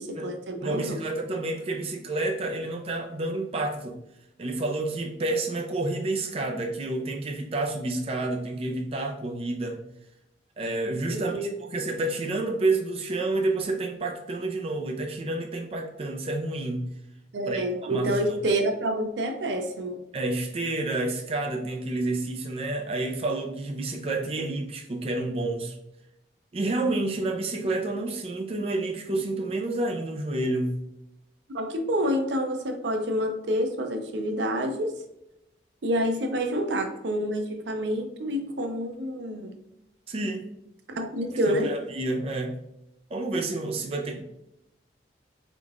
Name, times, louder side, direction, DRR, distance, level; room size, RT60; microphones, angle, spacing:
voice 1, 0.0-1.0 11.1-11.5 17.3-20.0 31.5-34.9 35.8-39.6 40.9-41.7, equal, 85° right, 6 dB, 0.5 m, -28 dB
voice 2, 0.6-4.0 4.4-9.8 10.6-16.9 17.5-18.4 20.1-25.8 26.5-30.8 40.1-40.6 41.5-42.6 43.1-44.2, right 2 dB, 35° right, 2 dB, 0.4 m, -29 dB
3.7 x 3.6 x 2.3 m, 0.84 s
head